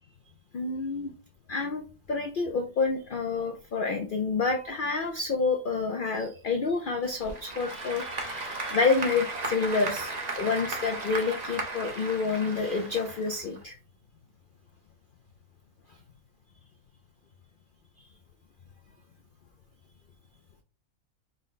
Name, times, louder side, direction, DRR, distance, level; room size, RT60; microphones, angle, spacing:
voice 1, 0.5-1.1 1.5-13.8 18.0-18.1, left 4 dB, 75° left, 4 dB, 0.4 m, -28 dB
Applause / Crowd, 7.0-13.6, right 2 dB, 40° right, 0.7 m, -35 dB
5.1 x 2.1 x 4.0 m, 0.35 s
omnidirectional pair, 1.6 m